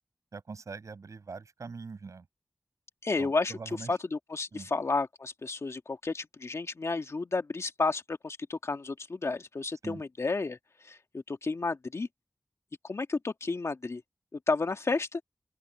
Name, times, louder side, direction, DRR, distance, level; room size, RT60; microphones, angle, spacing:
voice 1, 0.3-2.3 3.2-4.0 4.5-4.7 9.8-10.0, right 4 dB, 85° right, 7.8 m, -43 dB
voice 2, 3.0-3.5 3.9-10.6 10.8-12.1 12.8-14.0 14.5-15.2, left 3 dB, 60° left, 1.9 m, -31 dB
open air
wide cardioid pair, 65°, 5 cm